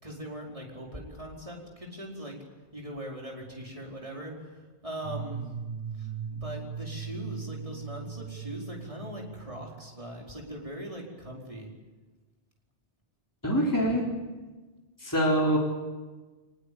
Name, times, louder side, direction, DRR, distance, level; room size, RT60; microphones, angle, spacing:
voice 1, 0.0-2.4 2.7-5.4 6.0-11.7, equal, 30° right, -1 dB, 5.0 m, -40 dB
sound 1, 5.0-10.2, right 6 dB, 65° right, 1.2 m, -39 dB
voice 2, 13.4-14.1 15.0-15.6, equal, 15° left, -3 dB, 4.0 m, -24 dB
23.5 x 20.5 x 8.7 m, 1.2 s
omnidirectional pair, 1.1 m